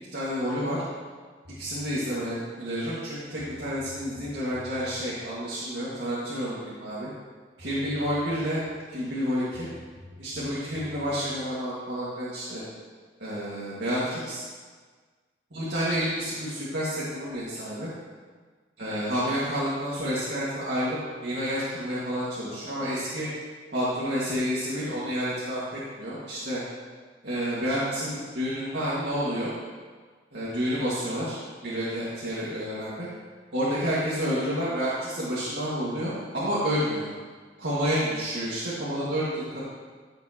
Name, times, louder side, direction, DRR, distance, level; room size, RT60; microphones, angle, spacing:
voice 1, 0.1-0.8 1.6-7.1 7.6-8.6 8.9-9.7 10.2-12.6 13.2-14.4 15.5-17.9 18.8-23.3 23.7-25.6 26.0-26.6 27.2-29.5 30.3-31.4 31.6-33.1 33.5-37.1 37.6-39.6, equal, 60° right, -9 dB, 2.1 m, -29 dB
sound 1, 1.4-2.0 3.0-3.1 3.4-5.1 7.2-7.3 7.6-8.8 9.5-11.2, left 1 dB, 40° right, 1.9 m, -48 dB
15.0 x 7.4 x 3.0 m, 1.5 s
head